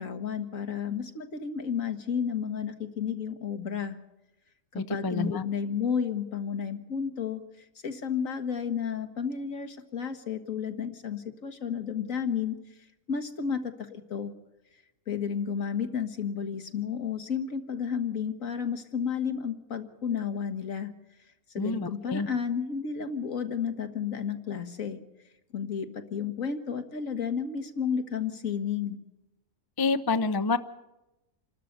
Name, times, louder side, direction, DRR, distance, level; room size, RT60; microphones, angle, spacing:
voice 1, 0.0-4.0 4.7-7.4 7.8-12.6 13.1-14.3 15.1-20.9 21.5-25.0 25.5-29.0, left 7 dB, 65° left, 7 dB, 1.9 m, -32 dB
voice 2, 4.7-5.4 21.6-22.3 29.8-30.6, left 3 dB, 25° left, 12 dB, 0.5 m, -28 dB
27.5 x 12.5 x 8.1 m, 0.97 s
omnidirectional pair, 1.5 m